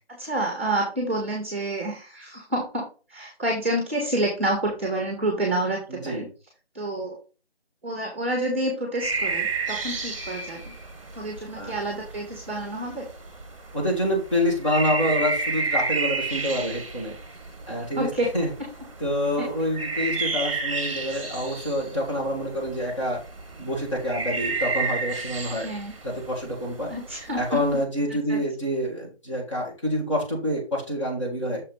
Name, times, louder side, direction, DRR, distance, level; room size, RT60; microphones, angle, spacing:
voice 1, 0.1-6.2 6.7-7.2 7.8-10.7 11.1-13.1 18.0-18.3 19.4-19.5 19.9-20.1 25.6-25.9 26.9-27.6 28.3-28.4, right 1 dB, 10° right, 1 dB, 1.1 m, -28 dB
voice 2, 5.9-6.3 11.5-11.7 13.7-17.1 17.7-18.1 18.3-18.5 19.0-23.2 23.6-25.7 26.0-26.9 27.4-31.6, equal, 30° left, -3 dB, 2.1 m, -27 dB
sound 1, 9.0-27.8, right 3 dB, 30° right, 1.1 m, -32 dB
6.6 x 5.1 x 3.9 m, 0.34 s
figure-of-eight pair, 170°, 32 cm